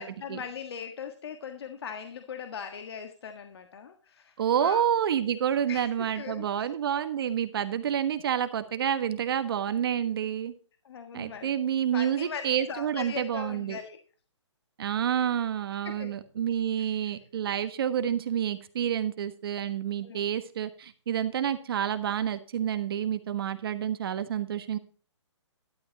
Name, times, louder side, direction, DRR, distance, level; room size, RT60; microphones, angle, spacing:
voice 1, 0.0-4.8 5.7-6.7 10.8-11.5 11.9-14.0 15.8-16.1 16.8-16.9 20.0-20.2, left 7 dB, 55° left, 6 dB, 1.5 m, -40 dB
voice 2, 4.4-10.5 11.1-13.8 14.8-24.8, right 9 dB, 50° right, 10 dB, 1.3 m, -29 dB
12.0 x 11.5 x 2.9 m, 0.40 s
hypercardioid pair, 145°, 16 cm